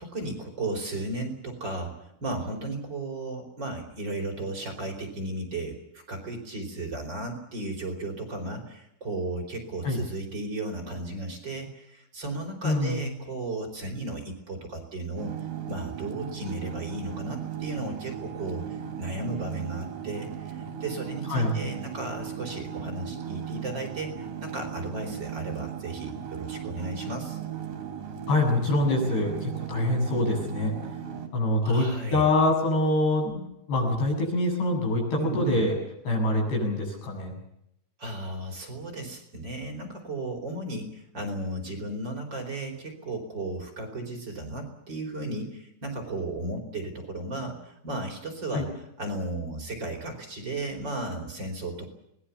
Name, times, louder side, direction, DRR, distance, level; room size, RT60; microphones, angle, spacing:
voice 1, 0.0-15.3 15.7-24.1 24.4-27.4 31.6-32.3 35.2-35.6 38.0-48.7 49.0-51.9, right 2 dB, 25° right, 1 dB, 4.6 m, -35 dB
voice 2, 12.6-13.1 21.3-21.5 28.3-30.7 31.3-35.7 36.1-37.3 48.5-48.6, left 2 dB, 85° left, 1 dB, 10.0 m, -25 dB
sound 1, 15.2-31.3, right 8 dB, 60° right, 4.7 m, -37 dB
26.0 x 20.5 x 7.2 m, 0.79 s
omnidirectional pair, 4.6 m